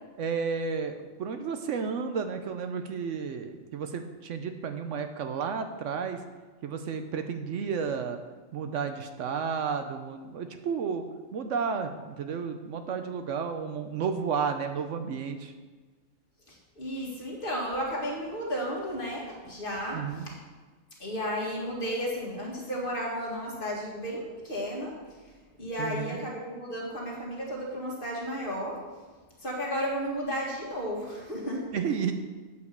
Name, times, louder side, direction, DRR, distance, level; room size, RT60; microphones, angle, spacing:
voice 1, 0.2-6.2 6.6-8.2 8.5-11.1 11.3-15.5 19.9-20.3 25.8-26.2 31.7-32.1, right 6 dB, 70° right, 7 dB, 0.9 m, -32 dB
voice 2, 16.5-20.4 21.0-25.0 25.6-28.8 29.4-31.7, equal, 40° left, -3 dB, 2.0 m, -33 dB
8.1 x 5.0 x 6.6 m, 1.4 s
omnidirectional pair, 1.4 m